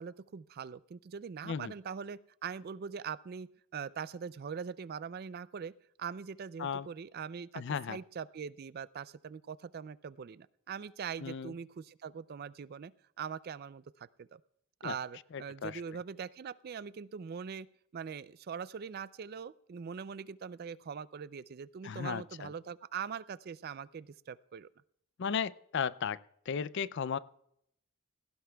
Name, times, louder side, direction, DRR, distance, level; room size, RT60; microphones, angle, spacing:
voice 1, 0.0-5.7 6.0-7.6 7.9-12.9 13.2-14.4 14.8-17.7 17.9-24.7, right 6 dB, 45° right, 18 dB, 0.3 m, -42 dB
voice 2, 7.6-8.0 11.2-11.5 14.8-15.0 15.3-16.0 21.8-22.5 25.2-26.2 26.5-27.2, left 6 dB, 55° left, 17 dB, 0.4 m, -35 dB
17.5 x 16.0 x 2.3 m, 0.73 s
head